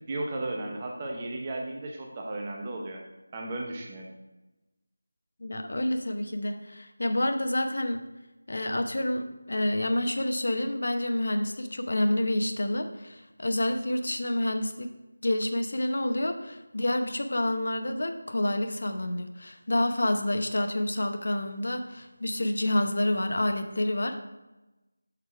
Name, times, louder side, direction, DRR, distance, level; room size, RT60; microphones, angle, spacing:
voice 1, 0.1-3.0 3.3-4.1, right 2 dB, 15° right, 0 dB, 0.6 m, -34 dB
voice 2, 5.4-8.0 8.5-14.9 15.2-24.2, left 1 dB, 60° left, 7 dB, 0.9 m, -28 dB
6.8 x 6.2 x 4.7 m, 1.1 s
figure-of-eight pair, 175°, 0 cm